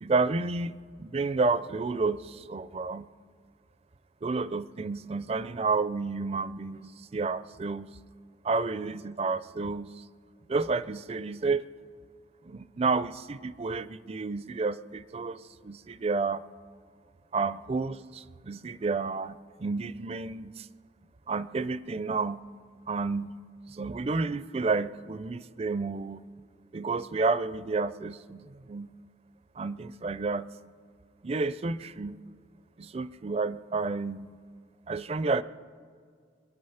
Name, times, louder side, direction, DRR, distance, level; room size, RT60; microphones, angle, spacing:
voice 1, 0.0-3.1 4.2-7.9 8.4-10.0 10.5-11.7 12.4-16.4 17.3-20.7 21.3-22.4 22.9-23.3 23.7-26.3 26.7-28.9 29.6-30.5 31.2-32.2 32.8-34.4 34.9-35.4, right 4 dB, 35° right, 16 dB, 0.4 m, -30 dB
25.0 x 9.3 x 5.7 m, 2.1 s
head